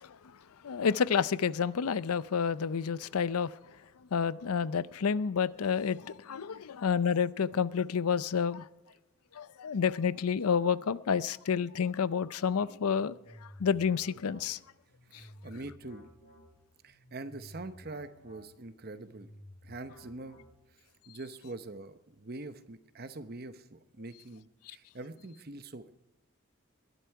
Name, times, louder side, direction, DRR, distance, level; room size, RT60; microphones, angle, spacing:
voice 1, 0.6-3.5 4.1-8.6 9.4-13.1 13.6-14.6, left 6 dB, 85° left, 18 dB, 0.5 m, -29 dB
sound 1, 12.8-20.9, left 1 dB, 45° left, 4.5 m, -54 dB
voice 2, 15.1-16.0 16.8-19.3 19.6-20.4 21.1-25.9, right 2 dB, 45° right, 11 dB, 0.9 m, -44 dB
21.0 x 11.5 x 4.7 m, 0.99 s
head